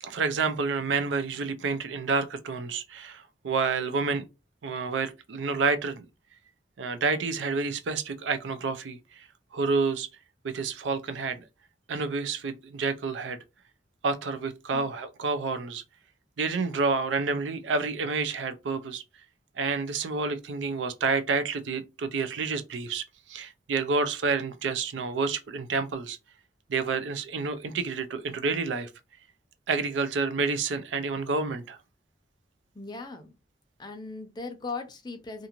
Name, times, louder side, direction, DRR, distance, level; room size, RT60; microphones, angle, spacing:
voice 1, 0.0-4.2 4.6-6.1 6.8-9.0 9.5-10.1 10.4-11.4 11.9-13.4 14.0-15.8 16.4-19.0 19.6-23.0 23.3-26.2 26.7-28.9 29.7-31.8, right 4 dB, 85° right, 0.4 m, -29 dB
voice 2, 32.7-33.3 33.8-35.5, left 3 dB, 25° left, 0.5 m, -38 dB
2.5 x 2.4 x 2.9 m
head